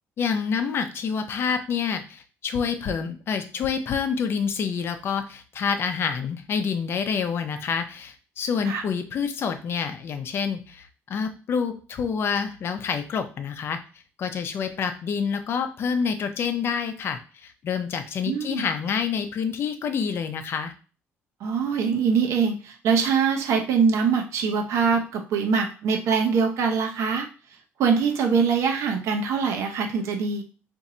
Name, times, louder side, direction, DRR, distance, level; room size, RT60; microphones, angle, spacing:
voice 1, 0.2-13.8 14.2-20.7, left 6 dB, 50° left, 7 dB, 0.5 m, -27 dB
voice 2, 18.3-18.6 21.4-27.3 27.8-30.4, right 6 dB, 70° right, 4 dB, 0.7 m, -23 dB
2.6 x 2.5 x 4.2 m, 0.37 s
cardioid pair, 125°, 5 cm